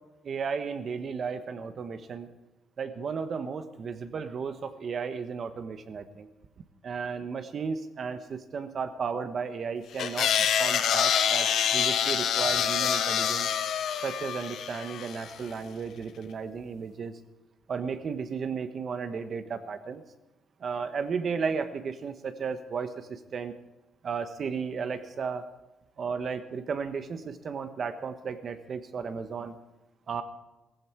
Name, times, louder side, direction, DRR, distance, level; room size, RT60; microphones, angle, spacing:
voice 1, 0.2-2.3 2.8-6.3 6.8-13.5 14.0-17.2 17.7-20.0 20.6-23.5 24.0-25.4 26.0-29.6 30.1-30.2, right 5 dB, 50° right, 10 dB, 1.3 m, -34 dB
sound 1, 10.0-15.3, left 8 dB, 75° left, 1.0 m, -26 dB
16.5 x 15.0 x 4.6 m, 1.0 s
cardioid pair, 90°, 0 cm